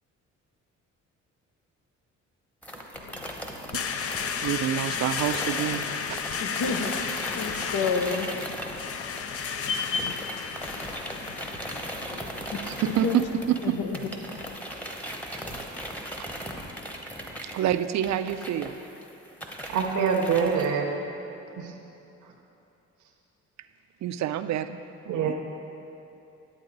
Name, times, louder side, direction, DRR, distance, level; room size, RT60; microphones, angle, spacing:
sound 1, 2.6-9.5 9.8-20.7, equal, 5° left, 1.0 m, -38 dB
sound 2, 2.9-14.6, left 6 dB, 50° left, 0.6 m, -34 dB
voice 1, 3.7-6.2 12.6-13.8 16.2-16.3 17.4-18.8 24.0-24.8 25.3-25.4, right 11 dB, 65° right, 0.5 m, -28 dB
voice 2, 6.4-8.3 9.6-10.3 13.0-13.1 13.8-13.9, left 5 dB, 75° left, 0.9 m, -29 dB
voice 3, 19.7-20.9 21.6-21.7 25.1-25.3, right 6 dB, 85° right, 0.9 m, -25 dB
9.9 x 8.5 x 4.0 m
cardioid pair, 90°, 30 cm